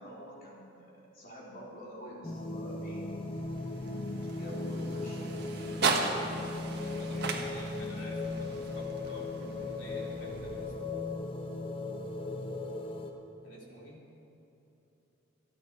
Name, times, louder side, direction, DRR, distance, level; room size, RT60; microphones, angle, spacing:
voice 1, 0.0-3.0 4.2-6.0, equal, 45° left, -5 dB, 3.5 m, -47 dB
sound 1, 2.2-13.1, left 2 dB, 25° left, 0.9 m, -37 dB
sound 2, 2.8-11.1, right 4 dB, 50° right, 1.5 m, -37 dB
voice 2, 6.8-11.3 13.4-14.0, equal, 65° left, -3 dB, 3.0 m, -51 dB
26.5 x 9.2 x 4.7 m, 3.0 s
head